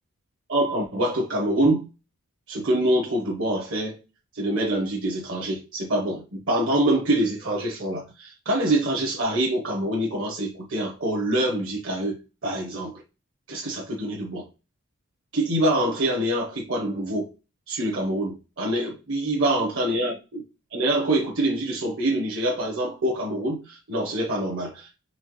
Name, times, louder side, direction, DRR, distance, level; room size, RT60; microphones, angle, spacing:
voice 1, 0.5-1.9 2.5-4.0 4.3-13.0 13.5-14.5 15.3-17.3 17.7-20.4 20.7-25.0, right 1 dB, 55° right, 0.8 m, -25 dB
4.2 x 3.2 x 3.0 m
head